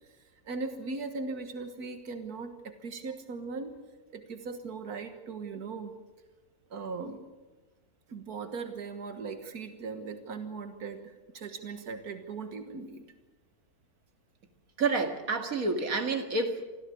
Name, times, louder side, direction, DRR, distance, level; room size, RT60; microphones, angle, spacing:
voice 1, 0.5-3.8 4.1-5.9 6.7-7.3 8.1-13.1, right 4 dB, 85° right, 7 dB, 2.0 m, -39 dB
voice 2, 14.8-16.7, right 3 dB, 65° right, 6 dB, 2.5 m, -29 dB
26.0 x 15.0 x 8.5 m, 1.2 s
omnidirectional pair, 1.6 m